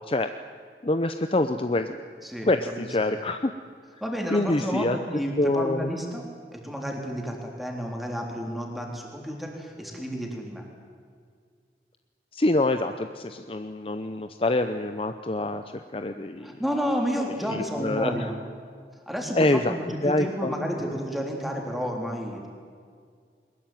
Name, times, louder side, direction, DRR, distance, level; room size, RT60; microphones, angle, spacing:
voice 1, 0.8-2.0 2.4-3.5 4.3-5.0 5.4-5.9 12.3-15.6 15.9-16.5 17.5-18.2 19.3-19.8 20.0-20.5, left 2 dB, 30° left, 8 dB, 0.7 m, -25 dB
voice 2, 2.2-3.1 4.0-6.2 6.5-10.6 16.4-18.3 19.1-22.5, equal, ahead, 0 dB, 3.6 m, -31 dB
22.0 x 20.5 x 9.2 m, 2.1 s
head